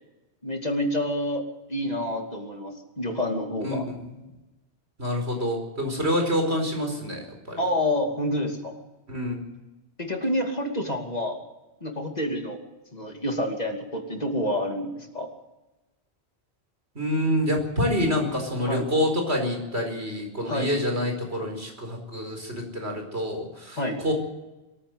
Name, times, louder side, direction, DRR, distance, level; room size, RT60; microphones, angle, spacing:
voice 1, 0.4-1.4 1.7-3.9 7.6-8.8 10.0-11.4 11.8-12.6 12.9-15.3 18.7-18.8 20.5-20.7 23.8-24.0, left 1 dB, 40° left, 3 dB, 2.8 m, -28 dB
voice 2, 3.6-4.1 5.0-7.6 9.1-9.4 16.9-24.1, left 1 dB, 90° right, 3 dB, 5.1 m, -27 dB
22.5 x 14.5 x 7.9 m, 1.0 s
omnidirectional pair, 1.1 m